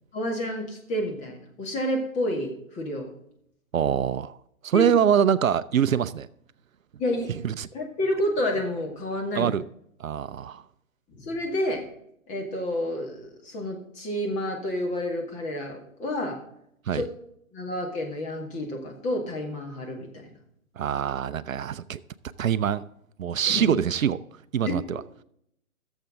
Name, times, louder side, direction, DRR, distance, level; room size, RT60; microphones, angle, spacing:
voice 1, 0.1-3.1 4.7-4.9 7.0-7.3 7.7-9.5 11.1-11.9 12.3-16.4 16.9-17.1 17.5-20.3 23.5-23.7 24.7-24.8, left 1 dB, 15° left, 2.0 m, -29 dB
voice 2, 3.7-4.4 4.6-6.3 7.4-7.7 9.3-9.6 10.0-10.6 16.9-17.0 20.8-22.0 22.4-22.8 23.2-24.2 24.5-25.0, right 8 dB, 75° right, 0.6 m, -24 dB
15.5 x 7.3 x 3.7 m
figure-of-eight pair, 135°, 42 cm